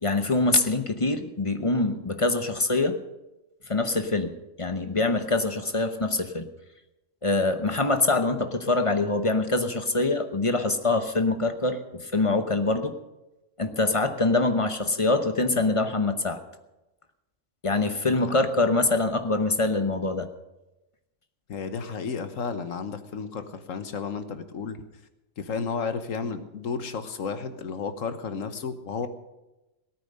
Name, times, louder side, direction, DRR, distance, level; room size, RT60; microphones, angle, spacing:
voice 1, 0.0-3.0 3.7-4.3 4.6-6.5 7.2-12.9 13.6-16.4 17.6-20.3, left 2 dB, 30° left, 8 dB, 0.9 m, -24 dB
voice 2, 21.5-24.8 25.4-29.1, left 5 dB, 75° left, 10 dB, 1.5 m, -32 dB
17.5 x 9.3 x 6.6 m, 0.99 s
omnidirectional pair, 1.4 m